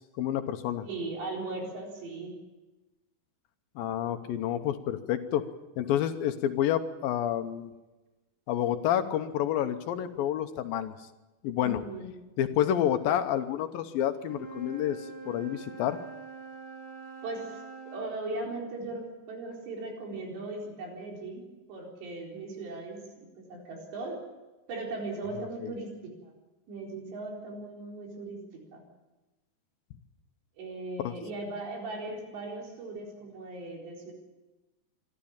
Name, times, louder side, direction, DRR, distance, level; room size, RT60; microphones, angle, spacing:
voice 1, 0.0-0.9 3.8-5.4 5.8-7.7 8.5-10.9 11.4-11.8 12.4-16.0 25.6-25.7 31.0-31.2, left 11 dB, 75° left, 9 dB, 2.3 m, -29 dB
voice 2, 0.8-2.4 11.6-12.1 17.2-24.2 24.7-25.9 26.2-26.3 26.7-28.4 28.7-28.8 30.6-34.1, right 2 dB, 85° right, 0 dB, 6.5 m, -38 dB
Wind instrument woodwind instrument, 14.1-18.1, right 4 dB, 20° right, 5.4 m, -44 dB
25.0 x 13.0 x 8.7 m, 1.1 s
omnidirectional pair, 4.9 m